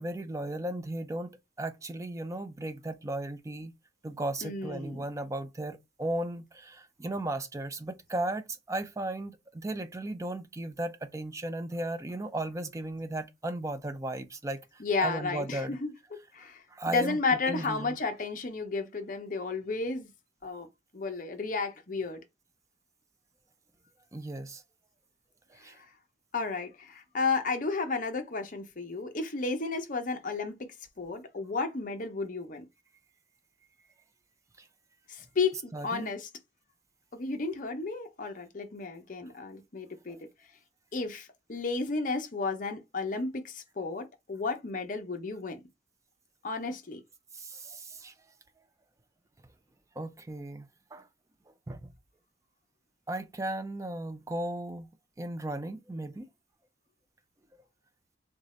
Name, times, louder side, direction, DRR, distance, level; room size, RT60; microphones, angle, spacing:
voice 1, 0.0-3.7 4.0-14.6 15.0-15.7 16.7-17.2 17.5-18.0 24.1-24.6 25.6-25.7 35.7-36.1 47.3-48.1 50.0-51.0 51.7-51.9 53.1-54.9 55.2-56.3, right 1 dB, 15° right, 0.3 m, -36 dB
voice 2, 4.4-5.0 14.8-20.1 20.4-20.7 20.9-22.2 25.6-25.9 26.3-30.5 31.0-32.7 35.1-36.3 37.1-40.2 40.9-45.6 46.4-47.0, left 4 dB, 40° left, 0.7 m, -33 dB
3.6 x 2.6 x 3.1 m
head